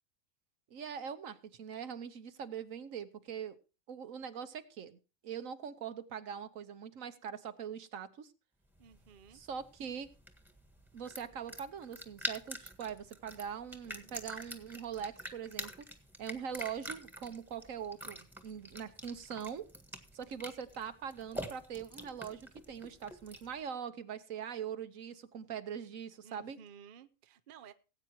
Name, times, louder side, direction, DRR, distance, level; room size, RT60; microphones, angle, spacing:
voice 1, 0.7-3.6 3.9-5.0 5.2-8.3 9.3-10.1 10.9-15.7 16.2-19.7 20.1-26.6, right 7 dB, 75° right, 11 dB, 1.4 m, -42 dB
sound 1, 8.8-23.6, equal, ahead, 1.5 m, -46 dB
voice 2, 8.8-9.4 13.9-14.1 26.2-27.7, right 7 dB, 45° right, 11 dB, 0.8 m, -55 dB
18.5 x 8.9 x 3.0 m, 0.32 s
omnidirectional pair, 1.4 m